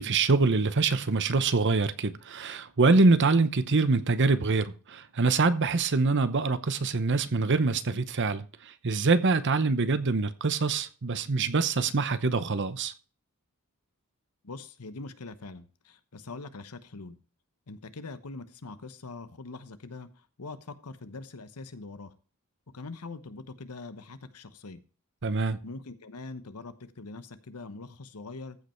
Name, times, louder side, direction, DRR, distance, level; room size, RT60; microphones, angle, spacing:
voice 1, 0.0-12.9 25.2-25.6, right 3 dB, 55° right, 0.9 m, -25 dB
voice 2, 14.4-17.2 17.7-20.1 20.4-22.1 22.7-24.8 25.6-28.6, left 3 dB, 85° left, 1.0 m, -43 dB
14.5 x 5.5 x 4.4 m
head